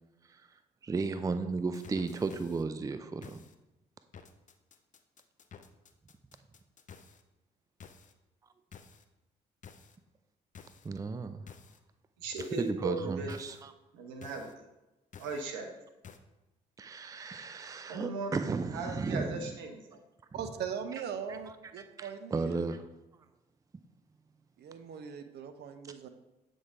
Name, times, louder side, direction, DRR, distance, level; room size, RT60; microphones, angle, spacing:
voice 1, 0.8-3.4 10.8-11.4 12.6-13.7 16.8-19.4 21.3-21.4 21.8-22.8, right 4 dB, 15° right, 10 dB, 0.4 m, -34 dB
sound 1, 1.7-2.6 3.2-3.5 4.1-7.2 7.8-8.1 8.7-9.0 9.6-10.0 10.5-10.9 11.5-11.8 12.4-12.7 13.3-13.6 14.2-14.5 15.1-15.5 16.0-16.2, left 6 dB, 40° left, 0.6 m, -52 dB
voice 2, 12.2-13.3 13.9-14.5 15.2-15.7 17.9-18.3 18.7-20.0, right 3 dB, 75° right, 4 dB, 1.0 m, -37 dB
voice 3, 20.3-22.8 24.6-26.1, right 7 dB, 55° right, 8 dB, 0.7 m, -40 dB
7.7 x 3.9 x 3.7 m, 1.0 s
hypercardioid pair, 50°, 20 cm